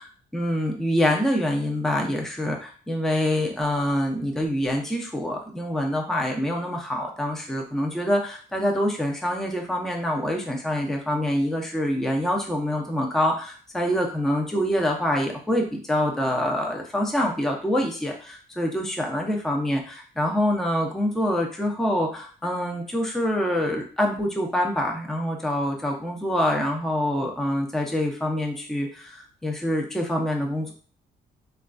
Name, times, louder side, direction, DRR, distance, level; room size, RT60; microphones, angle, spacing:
voice 1, 0.3-30.7, left 1 dB, ahead, 0 dB, 0.5 m, -25 dB
3.1 x 2.3 x 2.4 m, 0.41 s
cardioid pair, 95°, 18 cm